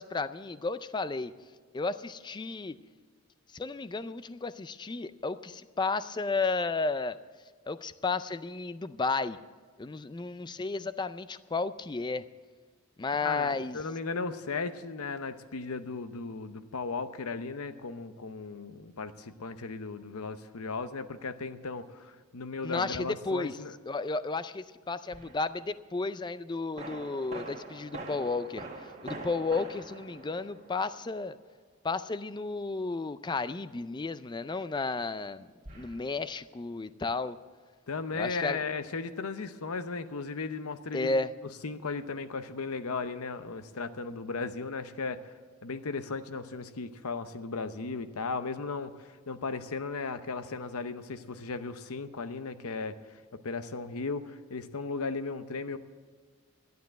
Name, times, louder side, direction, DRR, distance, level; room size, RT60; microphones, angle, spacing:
voice 1, 0.0-1.3 1.7-2.8 3.5-7.2 7.7-9.4 9.8-12.2 13.0-13.8 22.6-23.6 23.9-28.6 29.0-31.4 31.8-35.5 35.7-37.4 38.1-38.6 40.9-41.3, left 3 dB, 20° left, 14 dB, 0.3 m, -33 dB
voice 2, 13.2-23.8 37.9-41.2 41.6-53.2 53.4-55.8, left 4 dB, 80° left, 11 dB, 0.8 m, -36 dB
sound 1, 25.1-25.5 26.8-31.2 35.6-36.0, right 2 dB, 30° right, 1.7 m, -44 dB
13.5 x 9.4 x 7.6 m, 1.5 s
head